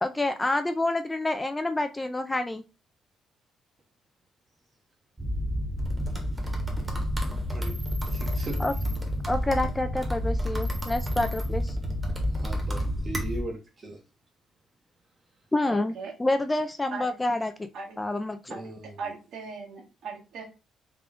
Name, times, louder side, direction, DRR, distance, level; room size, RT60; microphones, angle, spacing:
voice 1, 0.0-2.6 8.6-8.7 9.3-11.8 15.5-17.5 18.0-18.6, left 2 dB, 15° left, 8 dB, 0.4 m, -28 dB
sound 1, 5.2-13.4, equal, 15° right, 1.0 m, -29 dB
voice 2, 8.1-8.6 12.3-14.0 18.5-19.1, right 1 dB, 35° right, 2 dB, 0.8 m, -39 dB
voice 3, 15.7-16.1 16.9-17.0 17.7-17.9 18.5-18.6 19.0-20.4, right 5 dB, 75° right, -2 dB, 1.5 m, -38 dB
3.5 x 2.3 x 3.6 m, 0.28 s
cardioid pair, 90°, 0 cm